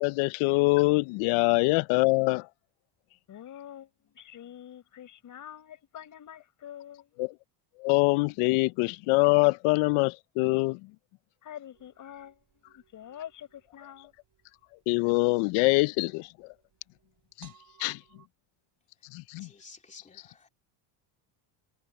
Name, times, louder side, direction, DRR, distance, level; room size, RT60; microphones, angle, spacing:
voice 1, 0.0-2.5 7.2-7.3 7.8-10.8 14.9-16.3 17.4-17.5 17.8-18.0 19.1-19.5, left 25 dB, 90° left, 0.5 m, -24 dB
voice 2, 3.3-7.1 11.4-12.4 12.7-14.1, left 10 dB, 40° left, 5.0 m, -46 dB
sound 1, 11.7-18.3, right 8 dB, 40° right, 4.2 m, -62 dB
voice 3, 19.4-20.5, left 4 dB, 15° left, 2.9 m, -52 dB
cardioid pair, 160°, 47 cm